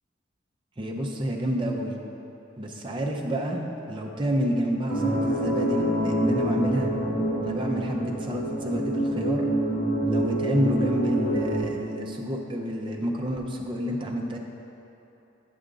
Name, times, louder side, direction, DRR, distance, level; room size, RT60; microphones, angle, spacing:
voice 1, 0.8-2.0 2.6-6.9 7.4-9.5 10.0-14.4, equal, 25° right, 0 dB, 0.6 m, -29 dB
sound 1, 4.9-11.6, right 1 dB, 55° left, 1.6 m, -26 dB
9.1 x 5.1 x 3.8 m, 3.0 s
head